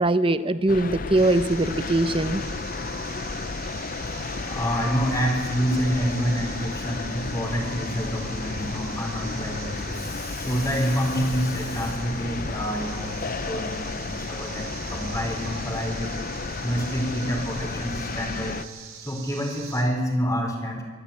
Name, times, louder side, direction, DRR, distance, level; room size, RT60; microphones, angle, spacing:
voice 1, 0.0-2.4, right 2 dB, 25° right, 12 dB, 0.8 m, -22 dB
sound 1, 0.7-18.6, left 4 dB, 40° left, 0.6 m, -33 dB
sound 2, 1.2-19.8, right 7 dB, 85° right, 3.8 m, -42 dB
voice 2, 4.1-18.6 19.0-20.8, equal, 15° left, 2 dB, 3.9 m, -28 dB
23.0 x 14.0 x 8.6 m, 1.4 s
head